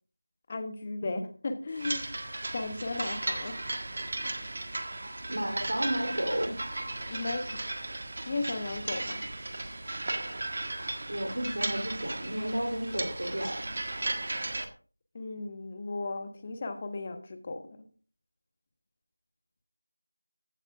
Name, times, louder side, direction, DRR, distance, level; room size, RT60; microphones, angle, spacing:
voice 1, 0.5-3.6 7.1-7.7 8.3-9.3 15.1-17.9, left 3 dB, 20° left, 8 dB, 1.2 m, -36 dB
sound 1, 1.7-14.7, right 2 dB, 40° right, 1.4 m, -36 dB
voice 2, 5.3-6.6 11.1-13.7, equal, 65° right, 0 dB, 3.3 m, -32 dB
15.0 x 13.5 x 2.5 m, 0.39 s
figure-of-eight pair, 170°, 0 cm